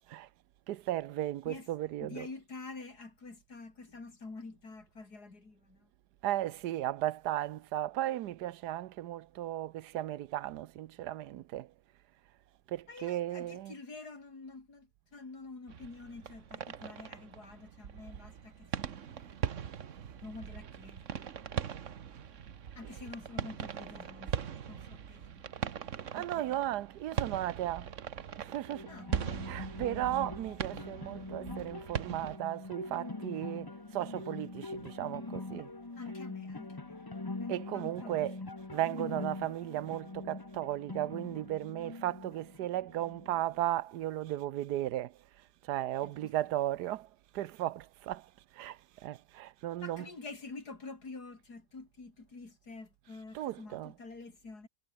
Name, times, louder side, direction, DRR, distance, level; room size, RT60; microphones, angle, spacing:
voice 1, 0.7-2.3 6.2-11.7 12.7-13.7 26.1-27.9 28.4-28.9 29.5-35.7 37.5-38.4 38.7-45.2 45.6-50.1 53.3-53.9, right 13 dB, 85° right, 1.3 m, -35 dB
voice 2, 2.0-5.9 12.9-19.7 20.1-21.3 22.1-22.2 22.8-26.7 27.1-27.3 28.9-29.1 36.0-38.3 46.0-46.2 49.8-54.7, left 3 dB, 75° left, 4.6 m, -48 dB
sound 1, 15.7-32.4, right 8 dB, 55° right, 1.3 m, -40 dB
sound 2, 28.7-43.6, left 3 dB, 15° left, 0.9 m, -43 dB
omnidirectional pair, 1.7 m